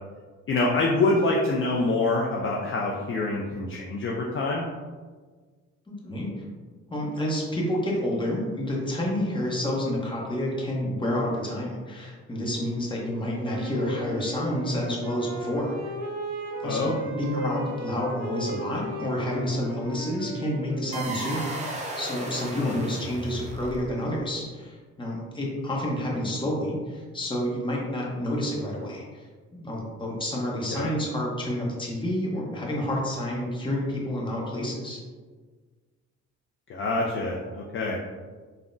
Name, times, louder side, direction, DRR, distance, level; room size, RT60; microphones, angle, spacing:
voice 1, 0.5-4.6 16.6-17.0 22.5-22.8 30.7-30.9 36.7-38.0, left 2 dB, 45° left, -3 dB, 0.4 m, -26 dB
voice 2, 5.9-6.3 6.9-15.8 16.6-29.2 29.5-35.0, left 1 dB, 15° left, -3 dB, 0.8 m, -29 dB
Wind instrument woodwind instrument, 13.4-21.4, right 1 dB, 60° right, 0.7 m, -36 dB
sound 1, 20.9-24.1, right 2 dB, 25° right, 0.5 m, -35 dB
3.5 x 2.1 x 2.5 m, 1.5 s
cardioid pair, 90°, 30 cm